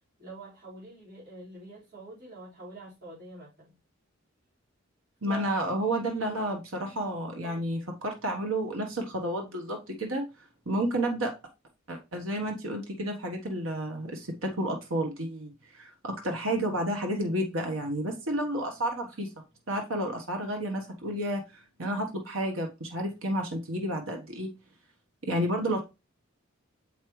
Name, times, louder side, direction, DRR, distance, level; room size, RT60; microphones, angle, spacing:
voice 1, 0.2-3.7 5.2-5.5 7.4-7.8, right 3 dB, 50° right, -8 dB, 4.7 m, -45 dB
voice 2, 5.2-10.2 10.7-11.3 11.9-19.3 19.7-24.5 25.2-25.8, right 1 dB, 75° right, 2 dB, 1.2 m, -31 dB
7.3 x 5.3 x 3.1 m, 0.26 s
head